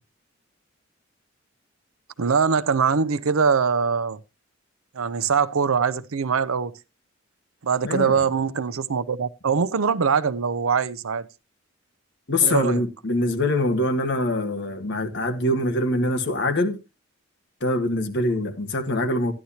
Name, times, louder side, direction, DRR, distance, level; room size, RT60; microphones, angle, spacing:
voice 1, 2.2-4.2 4.9-6.8 7.6-11.3 12.4-12.8, right 6 dB, 85° right, 0.6 m, -22 dB
voice 2, 7.8-8.2 12.3-16.8 17.6-19.3, left 1 dB, 60° left, 1.6 m, -24 dB
13.0 x 10.5 x 2.8 m
head